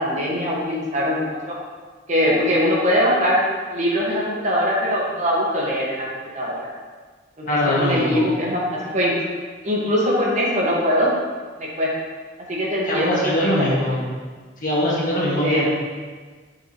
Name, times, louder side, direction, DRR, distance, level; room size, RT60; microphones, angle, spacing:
voice 1, 0.0-1.6 2.1-3.4 3.7-6.0 6.3-6.6 7.4-7.5 7.8-9.1 9.6-11.1 11.6-11.9 12.5-13.8 15.4-15.6, equal, 40° right, -4 dB, 1.4 m, -22 dB
voice 2, 7.5-8.2 12.9-14.0 14.6-15.7, left 1 dB, 45° left, -5 dB, 1.7 m, -21 dB
7.1 x 6.5 x 3.0 m, 1.4 s
head